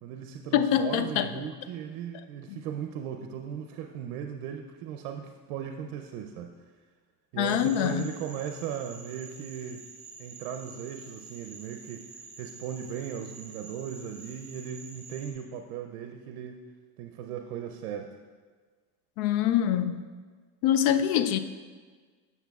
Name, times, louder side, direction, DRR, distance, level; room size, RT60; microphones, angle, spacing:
voice 1, 0.0-6.5 7.3-9.9 10.2-16.6 17.0-18.1, right 8 dB, 85° right, 4 dB, 0.6 m, -37 dB
voice 2, 0.5-1.3 2.5-2.6 7.4-8.1 19.2-20.0 20.6-21.4, left 10 dB, 75° left, 11 dB, 0.5 m, -24 dB
sound 1, 7.4-15.3, right 4 dB, 15° right, 1.8 m, -48 dB
8.1 x 7.0 x 2.3 m, 1.5 s
supercardioid pair, 115°, 43 cm